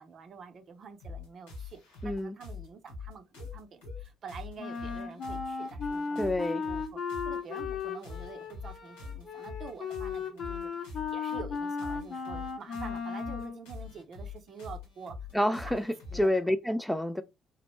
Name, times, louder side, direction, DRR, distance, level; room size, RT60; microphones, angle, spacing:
voice 1, 0.0-15.2 15.4-15.9 16.1-16.5, right 6 dB, 50° right, 0.6 m, -47 dB
sound 1, 1.0-16.4, left 5 dB, 85° left, 1.1 m, -44 dB
voice 2, 2.0-2.4 6.2-6.6 15.3-17.2, left 1 dB, 5° left, 0.3 m, -28 dB
Wind instrument woodwind instrument, 4.6-13.6, left 5 dB, 50° left, 0.6 m, -36 dB
3.0 x 2.1 x 3.0 m
hypercardioid pair, 55°, 0 cm